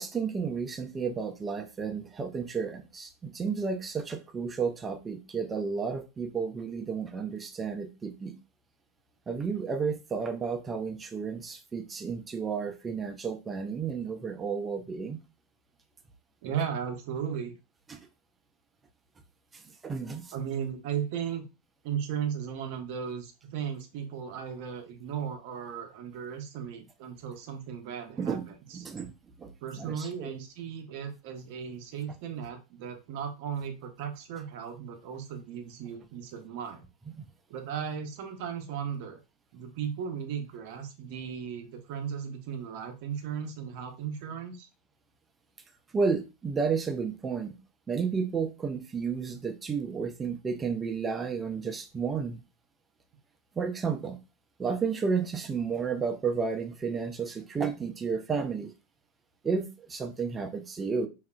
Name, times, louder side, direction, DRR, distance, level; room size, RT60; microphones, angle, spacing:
voice 1, 0.0-8.4 9.3-15.2 17.9-18.0 19.5-20.3 28.2-29.1 29.4-29.5 29.8-30.3 37.2-37.3 45.9-47.6 47.9-52.4 53.6-54.2 54.6-58.7 59.4-61.1, right 5 dB, 20° right, 0.4 m, -32 dB
voice 2, 16.4-17.5 20.3-21.5 21.8-28.4 28.7-28.8 29.6-36.8 37.5-39.2 39.5-44.7, right 8 dB, 60° right, 0.6 m, -36 dB
2.7 x 2.4 x 2.3 m
hypercardioid pair, 95°, 0 cm